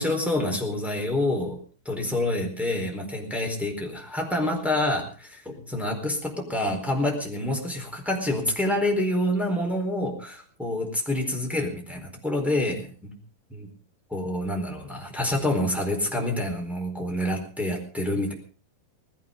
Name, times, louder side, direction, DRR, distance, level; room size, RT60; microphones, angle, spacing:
voice 1, 0.0-1.6 1.8-13.2 13.5-13.7 14.1-18.3, left 1 dB, ahead, 0 dB, 3.7 m, -27 dB
19.5 x 16.5 x 3.9 m, 0.37 s
omnidirectional pair, 4.3 m